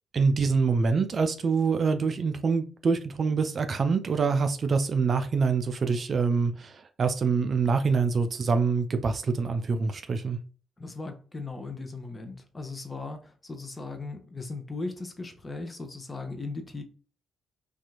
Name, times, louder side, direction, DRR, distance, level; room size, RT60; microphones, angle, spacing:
voice 1, 0.1-10.4, right 5 dB, 45° right, 0.3 m, -25 dB
voice 2, 10.8-16.8, left 3 dB, 25° left, 0.6 m, -38 dB
2.8 x 2.4 x 2.4 m
figure-of-eight pair, 40°, 0 cm